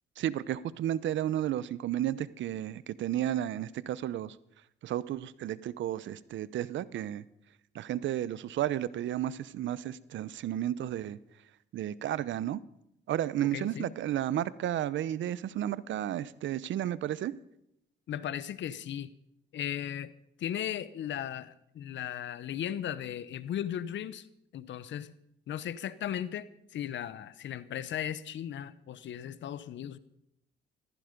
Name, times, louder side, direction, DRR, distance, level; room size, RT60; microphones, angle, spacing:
voice 1, 0.2-4.4 4.8-7.2 7.7-11.2 11.7-12.6 13.1-17.3, right 12 dB, 70° right, 0.7 m, -32 dB
voice 2, 13.5-13.9 18.1-19.1 19.5-20.1 20.4-24.3 24.5-25.1 25.5-30.0, left 10 dB, 70° left, 0.9 m, -36 dB
15.0 x 14.5 x 5.2 m
cardioid pair, 90°, 20 cm